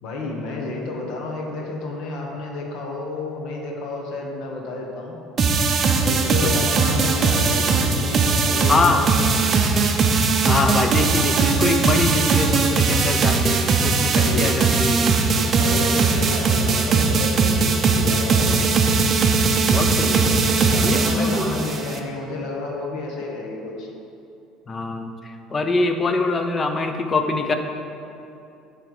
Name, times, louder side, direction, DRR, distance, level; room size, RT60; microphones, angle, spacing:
voice 1, 0.0-5.2 6.0-9.3 14.2-14.5 15.4-18.5 20.5-23.9, left 3 dB, 65° left, -1 dB, 1.1 m, -30 dB
sound 1, 5.4-22.0, right 4 dB, 35° right, 0.5 m, -19 dB
voice 2, 8.7-9.0 10.4-15.0 19.7-20.4 20.8-21.6 24.7-27.6, left 3 dB, 25° left, 6 dB, 0.5 m, -24 dB
9.0 x 3.3 x 4.8 m, 2.7 s
cardioid pair, 130°, 0 cm